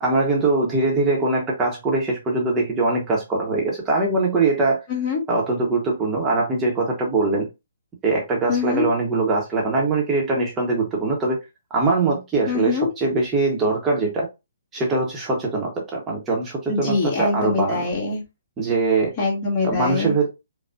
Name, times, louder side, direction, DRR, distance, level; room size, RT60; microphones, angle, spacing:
voice 1, 0.0-4.8 5.3-7.5 8.0-11.4 11.7-14.3 14.7-17.8 18.6-19.1 19.6-20.3, right 3 dB, 15° right, 1.0 m, -22 dB
voice 2, 4.9-5.2 8.5-8.9 12.5-12.9 16.7-18.2 19.2-20.1, left 4 dB, 30° left, 1.8 m, -23 dB
5.0 x 2.3 x 2.5 m
figure-of-eight pair, 135°, 0 cm